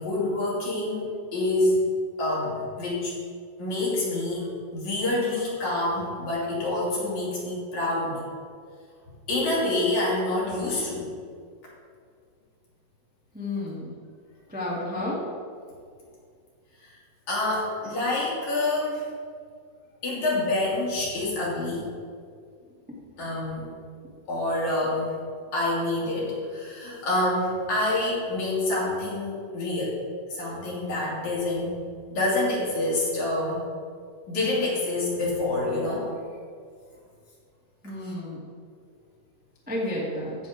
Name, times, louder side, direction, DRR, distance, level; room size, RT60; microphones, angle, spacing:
voice 1, 0.0-1.8 2.2-3.1 3.6-4.5 4.7-8.2 9.3-11.1 17.3-19.1 20.0-21.9 23.2-23.7 24.3-25.2 25.5-30.0 30.3-31.8 32.1-33.6 34.3-36.1, left 2 dB, 60° left, -6 dB, 4.1 m, -27 dB
voice 2, 13.3-13.9 14.5-15.2 37.8-38.4 39.7-40.4, left 1 dB, 5° right, -6 dB, 1.7 m, -31 dB
15.5 x 7.0 x 3.7 m, 2.1 s
omnidirectional pair, 3.8 m